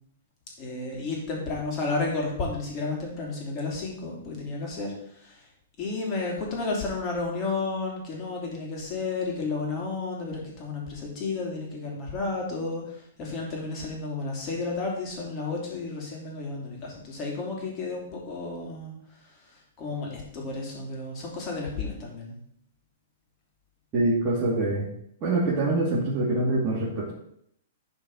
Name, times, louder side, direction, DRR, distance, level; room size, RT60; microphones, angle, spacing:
voice 1, 0.6-5.4 5.8-18.9 19.5-22.4, left 3 dB, 25° left, -2 dB, 2.9 m, -32 dB
voice 2, 23.9-24.9 25.2-27.1, right 2 dB, 20° right, -8 dB, 2.7 m, -25 dB
11.5 x 4.5 x 4.8 m, 0.71 s
hypercardioid pair, 155°, 0 cm